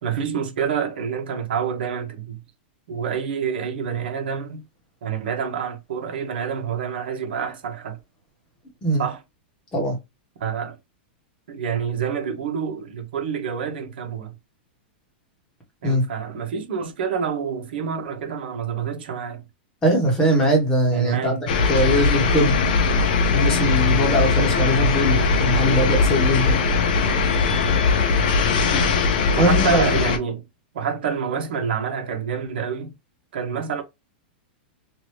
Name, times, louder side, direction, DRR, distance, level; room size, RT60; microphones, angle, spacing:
voice 1, 0.0-2.4 2.9-4.6 5.0-8.0 9.0-9.2 10.4-10.8 11.5-14.3 15.8-19.4 20.9-21.4 23.8-23.9 29.4-30.4 30.7-32.9 33.3-33.8, right 7 dB, 65° right, 1.1 m, -27 dB
voice 2, 19.8-21.4 21.7-22.6 23.3-26.6 28.7-28.9 29.4-29.9, equal, 10° left, 1.2 m, -21 dB
sound 1, 21.5-30.2, left 4 dB, 50° left, 0.7 m, -20 dB
2.9 x 2.6 x 3.2 m
supercardioid pair, 175°, 6 cm